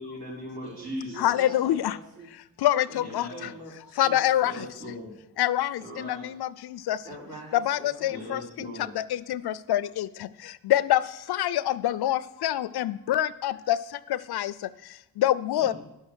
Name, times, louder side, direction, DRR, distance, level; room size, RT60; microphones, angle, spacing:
voice 1, 0.0-1.5 3.0-3.5 4.4-5.2 5.8-6.3 8.1-8.9 15.6-15.7, left 1 dB, 80° right, -4 dB, 3.8 m, -39 dB
voice 2, 0.6-2.3 2.9-4.5 7.0-8.3, right 1 dB, 60° right, -3 dB, 3.9 m, -45 dB
voice 3, 1.2-2.0 2.6-3.5 4.0-4.7 5.4-7.0 7.5-15.7, left 12 dB, 75° left, 17 dB, 0.5 m, -26 dB
10.5 x 6.5 x 6.1 m, 0.87 s
cardioid pair, 70°, 39 cm